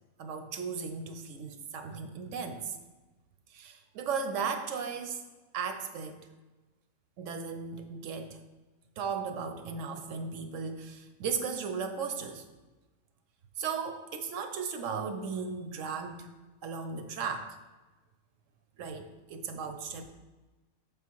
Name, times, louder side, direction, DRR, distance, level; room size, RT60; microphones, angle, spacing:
voice 1, 0.2-2.8 3.5-5.2 5.5-6.3 7.2-8.4 9.0-12.4 13.6-16.3 16.6-17.6 18.8-20.1, right 5 dB, 70° right, 7 dB, 0.9 m, -36 dB
6.3 x 3.7 x 4.5 m, 1.2 s
omnidirectional pair, 1.5 m